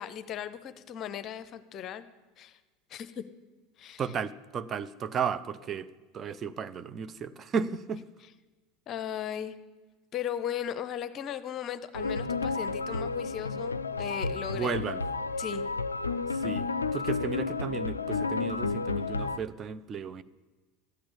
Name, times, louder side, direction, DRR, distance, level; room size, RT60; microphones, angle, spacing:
voice 1, 0.0-2.1 2.4-2.6 2.9-3.2 3.8-4.0 8.9-9.6 10.1-14.7 15.4-15.7, left 9 dB, 40° left, 13 dB, 0.8 m, -37 dB
voice 2, 4.0-5.9 6.1-8.0 14.5-15.0 16.3-16.7 16.9-20.2, right 6 dB, 35° right, 12 dB, 0.6 m, -34 dB
sound 1, 11.9-19.4, left 4 dB, 85° left, 0.4 m, -31 dB
13.0 x 8.8 x 8.4 m, 1.3 s
figure-of-eight pair, 75°, 0 cm